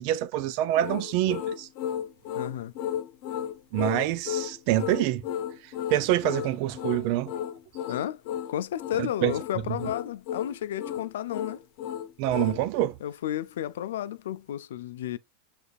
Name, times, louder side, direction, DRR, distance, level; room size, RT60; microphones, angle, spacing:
voice 1, 0.0-1.7 3.7-5.3 5.9-7.3 9.0-9.3 9.7-9.8 12.2-13.0, right 13 dB, 55° right, 0.5 m, -26 dB
sound 1, 0.8-12.6, left 10 dB, 55° left, 0.9 m, -34 dB
voice 2, 2.4-2.7 7.9-8.2 8.5-11.6 13.0-15.2, left 11 dB, 80° left, 0.4 m, -32 dB
6.4 x 3.3 x 2.4 m
hypercardioid pair, 120°, 0 cm